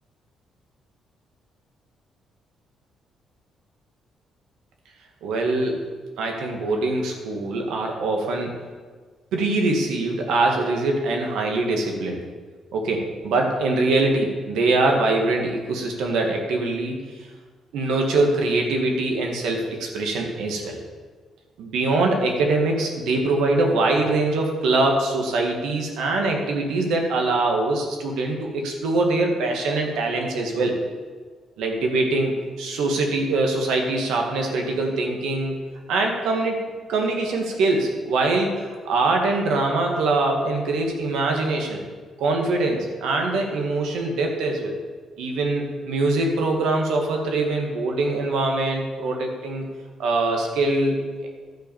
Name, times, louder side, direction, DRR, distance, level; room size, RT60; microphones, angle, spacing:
voice 1, 5.2-5.8 6.2-8.5 9.3-12.2 12.7-17.0 17.7-20.8 21.6-30.8 31.6-35.5 35.9-36.6 36.9-41.8 42.2-44.8 45.2-49.6 50.0-51.0, right 2 dB, 85° right, 2 dB, 1.8 m, -23 dB
11.5 x 4.8 x 7.3 m, 1.5 s
cardioid pair, 90°, 0 cm